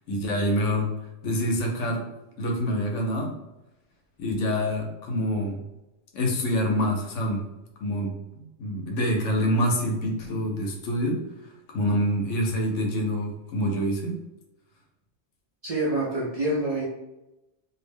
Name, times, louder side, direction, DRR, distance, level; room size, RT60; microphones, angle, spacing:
voice 1, 0.1-2.1 2.4-3.4 4.2-5.6 6.1-7.4 7.8-11.2 11.7-14.2, equal, 80° left, 1 dB, 1.0 m, -26 dB
voice 2, 15.6-16.9, right 1 dB, 55° right, -5 dB, 0.4 m, -26 dB
2.5 x 2.1 x 3.3 m, 0.95 s
omnidirectional pair, 1.3 m